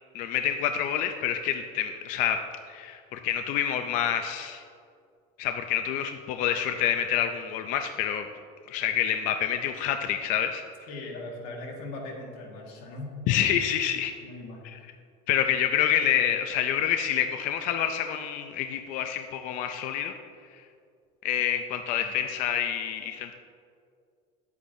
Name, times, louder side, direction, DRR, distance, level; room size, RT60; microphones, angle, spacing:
voice 1, 0.1-2.4 2.7-4.6 5.4-8.3 8.7-10.6 13.3-14.1 15.3-20.2 21.2-23.3, left 9 dB, 45° left, 6 dB, 0.4 m, -27 dB
voice 2, 10.9-13.6 14.2-14.9 22.0-22.1, left 2 dB, 80° left, 0 dB, 1.7 m, -40 dB
9.9 x 8.2 x 2.6 m, 2.3 s
cardioid pair, 170°, 18 cm